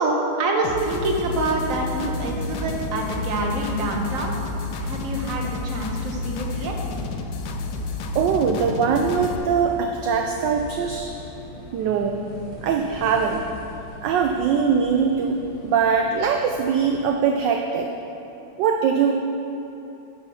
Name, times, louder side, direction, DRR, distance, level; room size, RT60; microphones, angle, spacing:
voice 1, 0.0-4.3 4.7-6.7, right 2 dB, 50° right, 1 dB, 1.3 m, -26 dB
sound 1, 0.6-9.4, left 3 dB, 65° left, 1.2 m, -31 dB
sound 2, 0.9-17.1, left 2 dB, 90° left, 1.7 m, -40 dB
voice 2, 8.1-11.1 11.7-12.3 12.6-13.5 14.0-15.4 15.6-17.9 18.6-19.1, right 6 dB, 70° right, 3 dB, 1.1 m, -22 dB
9.1 x 6.8 x 5.6 m, 2.9 s
omnidirectional pair, 2.2 m